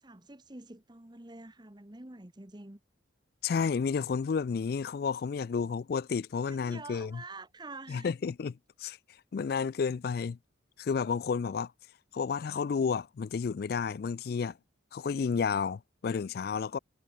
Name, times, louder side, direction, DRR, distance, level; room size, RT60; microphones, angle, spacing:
voice 1, 0.0-2.8 6.5-8.1, right 2 dB, 20° right, 1.2 m, -47 dB
voice 2, 3.4-7.2 7.9-9.0 9.3-10.4 10.8-11.7 12.1-14.6 14.9-16.8, left 5 dB, 50° left, 0.3 m, -31 dB
head